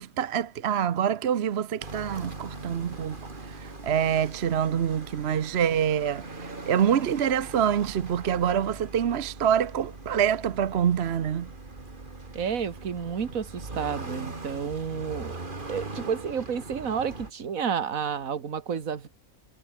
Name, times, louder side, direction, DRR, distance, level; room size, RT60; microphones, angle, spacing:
voice 1, 0.0-3.2 3.8-6.2 6.7-11.5, right 9 dB, 55° right, 1.0 m, -25 dB
sound 1, 1.8-17.3, right 3 dB, 35° right, 2.8 m, -41 dB
voice 2, 12.3-15.4 15.7-19.1, right 7 dB, 70° right, 2.0 m, -30 dB
omnidirectional pair, 1.5 m